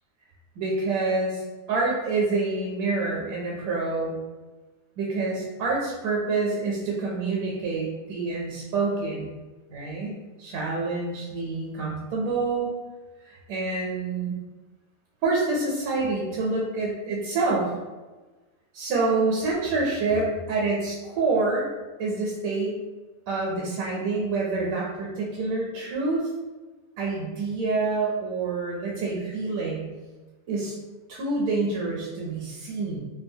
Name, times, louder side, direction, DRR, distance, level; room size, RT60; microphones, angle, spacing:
voice 1, 0.6-4.2 5.0-9.3 9.7-12.7 13.3-14.4 15.2-17.7 18.7-21.7 22.0-22.8 23.3-26.3 27.0-29.8 30.5-30.8 31.1-33.0, right 3 dB, 85° right, -3 dB, 1.0 m, -27 dB
2.7 x 2.2 x 2.6 m, 1.2 s
omnidirectional pair, 1.4 m